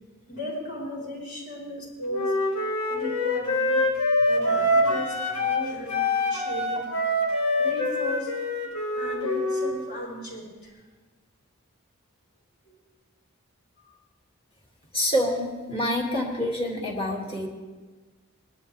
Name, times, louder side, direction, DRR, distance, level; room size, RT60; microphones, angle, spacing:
voice 1, 0.3-2.3 2.9-3.8 4.2-6.8 7.6-8.3 9.0-10.8 12.7-12.8 13.8-13.9, equal, 50° left, -3 dB, 4.2 m, -35 dB
Wind instrument woodwind instrument, 2.1-5.6 5.9-9.8, left 1 dB, 80° left, 2.6 m, -25 dB
voice 2, 14.9-17.5, equal, 25° left, -1 dB, 2.2 m, -27 dB
21.0 x 11.5 x 3.4 m, 1.3 s
head